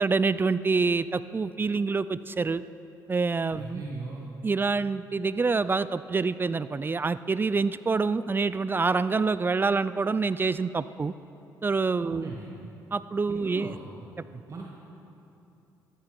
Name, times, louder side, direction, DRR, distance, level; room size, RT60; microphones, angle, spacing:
voice 1, 0.0-2.6 3.1-3.8 4.4-11.1 11.6-12.3 12.9-13.8, right 4 dB, 25° right, 16 dB, 0.4 m, -26 dB
voice 2, 3.5-4.2 12.0-12.5 13.3-13.8 14.5-14.8, right 3 dB, 40° right, -3 dB, 2.0 m, -38 dB
14.0 x 12.5 x 6.1 m, 2.9 s
supercardioid pair, 65°, 8 cm